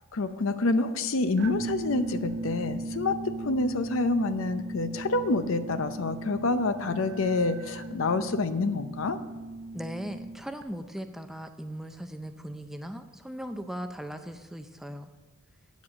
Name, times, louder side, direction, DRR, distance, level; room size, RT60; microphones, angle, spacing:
voice 1, 0.1-9.2, left 3 dB, 70° left, 11 dB, 0.6 m, -27 dB
sound 1, 1.4-10.6, right 2 dB, 55° right, 0.5 m, -38 dB
voice 2, 9.7-15.1, equal, ahead, 7 dB, 0.4 m, -38 dB
9.2 x 7.3 x 6.2 m, 1.2 s
head